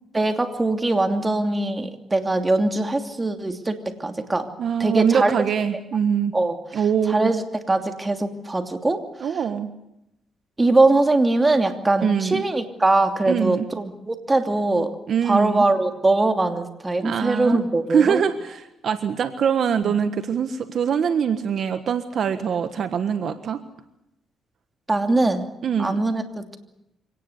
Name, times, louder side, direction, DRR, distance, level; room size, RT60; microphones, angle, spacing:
voice 1, 0.1-4.5 4.8-5.3 6.3-6.6 7.1-9.0 10.6-14.9 15.2-18.2 19.8-19.9 24.9-25.5 25.8-26.6, right 2 dB, 20° right, 6 dB, 2.8 m, -21 dB
voice 2, 4.6-6.3 6.7-7.3 9.2-9.7 12.0-12.4 13.3-13.7 15.1-15.7 17.0-17.6 17.9-23.6 25.6-26.0, right 7 dB, 60° right, 9 dB, 1.5 m, -23 dB
24.5 x 18.5 x 8.2 m, 0.86 s
cardioid pair, 90°, 0 cm